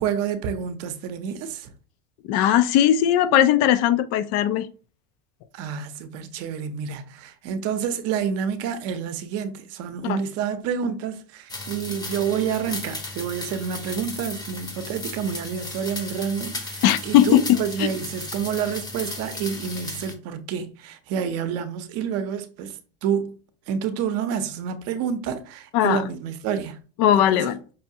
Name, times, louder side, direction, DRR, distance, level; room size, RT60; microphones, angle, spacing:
voice 1, 0.0-1.7 5.5-23.3 23.7-26.8 27.3-27.5, right 7 dB, 50° right, 0.6 m, -28 dB
voice 2, 2.3-4.7 10.0-10.2 16.8-17.9 25.7-26.0 27.0-27.6, left 11 dB, 55° left, 0.5 m, -19 dB
sound 1, 11.5-20.1, left 2 dB, 15° left, 0.7 m, -35 dB
5.5 x 2.2 x 2.7 m
supercardioid pair, 135°, 31 cm